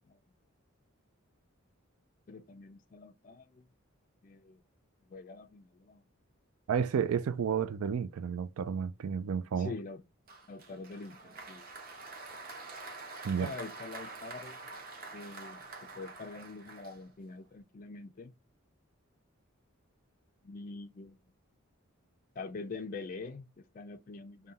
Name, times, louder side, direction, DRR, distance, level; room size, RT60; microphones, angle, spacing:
voice 1, 2.3-3.7 4.2-4.6 5.1-6.0 9.6-10.0 10.5-11.6 13.4-14.6 15.1-18.3 20.4-21.2 22.4-24.5, left 3 dB, 40° left, 0.3 m, -45 dB
voice 2, 6.7-9.7 13.2-13.5, right 7 dB, 80° right, 0.4 m, -31 dB
Applause, 10.3-17.4, right 3 dB, 40° right, 1.1 m, -47 dB
3.7 x 2.2 x 4.0 m
head